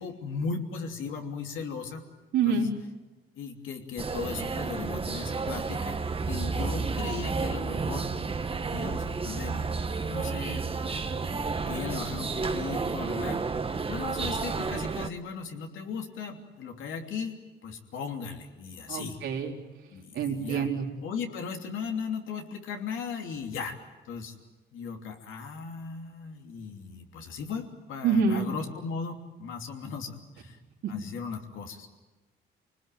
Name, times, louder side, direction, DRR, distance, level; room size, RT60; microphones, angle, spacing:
voice 1, 0.0-2.0 2.4-2.7 3.4-8.1 8.7-9.6 10.0-10.6 11.3-13.5 13.9-19.2 19.9-20.7 21.0-23.8 24.0-24.3 24.7-30.6 30.9-31.9, left 5 dB, 80° left, 3 dB, 3.1 m, -37 dB
voice 2, 2.3-2.7 18.9-19.6 20.1-20.9 28.0-28.5 30.8-30.9, right 5 dB, 80° right, -1 dB, 4.0 m, -26 dB
sound 1, 4.0-15.1, right 4 dB, 30° right, 1.3 m, -31 dB
26.5 x 20.0 x 9.3 m, 1.2 s
cardioid pair, 90°, 20 cm